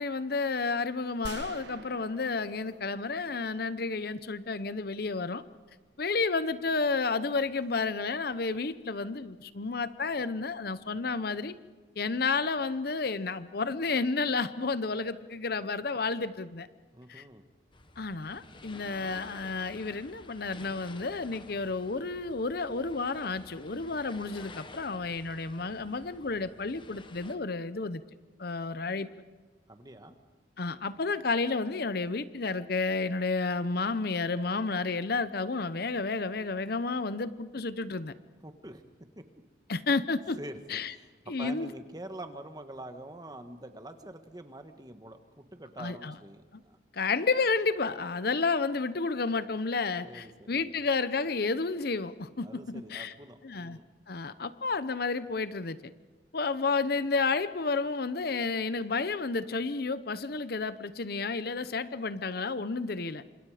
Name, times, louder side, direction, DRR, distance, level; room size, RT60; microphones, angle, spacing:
voice 1, 0.0-5.4 6.0-11.5 12.0-16.7 17.1-17.2 18.0-28.0 28.4-29.1 30.6-38.1 39.7-40.4 40.7-40.9 41.3-41.7 45.8-46.1 46.5-46.6 46.9-53.1 53.4-53.8 54.1-55.9 56.3-63.2, left 4 dB, 55° left, 14 dB, 0.8 m, -31 dB
sound 1, 1.2-4.1, right 3 dB, 65° right, 1.4 m, -47 dB
voice 2, 16.9-17.4 29.7-30.2 38.4-38.8 39.1-39.2 40.4-41.1 41.4-46.8 50.0-50.7 52.4-53.9, right 1 dB, 20° right, 7 dB, 1.5 m, -45 dB
sound 2, 17.7-27.4, left 2 dB, 25° left, 1.2 m, -51 dB
28.5 x 26.5 x 5.0 m, 1.4 s
head